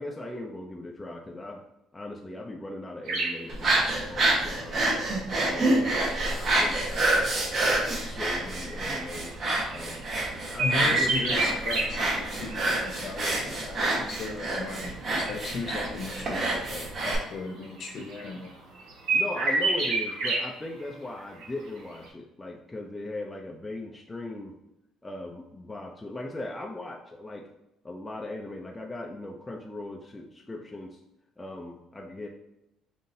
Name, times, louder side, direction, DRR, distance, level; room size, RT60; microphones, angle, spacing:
voice 1, 0.0-1.6 1.9-4.8 5.4-7.5 7.9-9.3 9.7-10.0 10.5-11.1 19.1-24.5 25.0-27.5 27.8-31.0 31.4-32.3, left 2 dB, 15° left, 1 dB, 0.4 m, -39 dB
sound 1, 3.1-3.4 4.5-4.6 5.4-10.1 10.6-11.8 12.1-12.6 12.8-13.3 14.1-15.9 16.1-16.7 17.0-17.1 17.3-18.5 18.7-20.4 20.8-20.9 21.2-21.7 21.9-22.1, right 3 dB, 85° right, 1.1 m, -30 dB
sound 2, 3.5-17.2, right 2 dB, 45° right, 1.1 m, -27 dB
voice 2, 10.6-18.5, left 3 dB, 55° left, 2 dB, 0.8 m, -36 dB
5.4 x 2.6 x 2.7 m, 0.88 s
cardioid pair, 115°, 0 cm